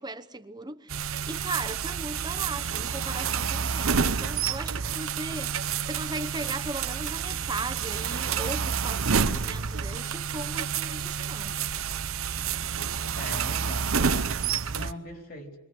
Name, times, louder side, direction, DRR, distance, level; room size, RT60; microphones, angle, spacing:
voice 1, 0.0-5.5 5.8-11.6, right 2 dB, 20° right, 1.0 m, -37 dB
sound 1, 0.9-14.9, right 6 dB, 85° right, 0.9 m, -29 dB
voice 2, 13.1-15.6, left 1 dB, 45° left, 4.0 m, -41 dB
28.5 x 22.5 x 7.9 m
head